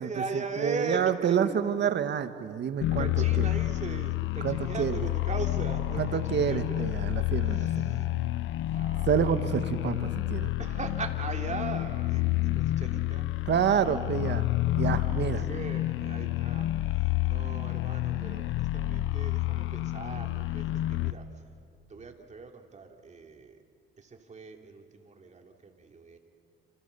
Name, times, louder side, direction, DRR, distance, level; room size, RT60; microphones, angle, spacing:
voice 1, 0.0-1.0 1.3-1.6 3.0-6.8 7.5-8.1 8.7-9.2 10.6-13.3 15.2-16.7 17.2-21.3 21.9-23.6 24.0-26.2, right 4 dB, 35° right, 3 dB, 3.3 m, -39 dB
voice 2, 0.6-3.5 4.4-5.0 6.0-8.0 9.1-10.5 13.4-14.4 14.8-15.5, right 8 dB, 60° right, 10 dB, 1.7 m, -28 dB
sound 1, 2.8-21.1, left 15 dB, 85° left, 1.0 m, -29 dB
29.0 x 27.5 x 7.0 m, 2.1 s
cardioid pair, 90°, 20 cm